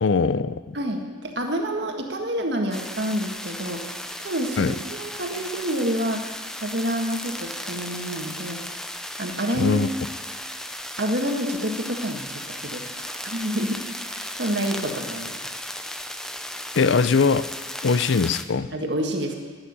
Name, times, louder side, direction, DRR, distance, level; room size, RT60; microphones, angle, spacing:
voice 1, 0.0-0.6 4.6-4.7 9.6-9.9 16.8-17.5 17.8-18.7, left 4 dB, 70° left, 16 dB, 0.5 m, -21 dB
voice 2, 0.7-3.8 4.2-6.3 6.6-8.6 9.2-9.8 11.0-15.4 18.7-19.4, equal, 60° right, 3 dB, 1.7 m, -28 dB
sound 1, 2.7-18.4, left 1 dB, 5° left, 0.5 m, -35 dB
11.5 x 8.8 x 9.8 m, 1.5 s
head